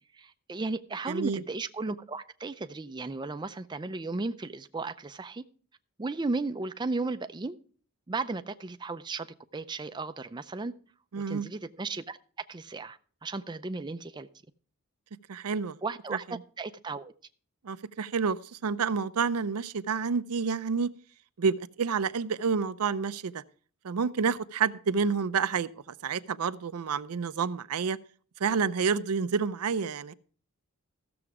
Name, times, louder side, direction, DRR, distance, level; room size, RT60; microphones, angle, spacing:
voice 1, 0.1-5.4 6.0-7.6 8.1-10.7 11.1-12.2 12.5-14.3 15.8-17.1, right 3 dB, 20° right, 0.4 m, -35 dB
voice 2, 1.1-1.4 11.1-11.5 15.3-15.8 16.1-16.2 17.6-20.9 21.4-23.4 23.8-28.0 28.4-30.1, right 5 dB, 80° right, 0.5 m, -29 dB
14.5 x 6.9 x 4.8 m
head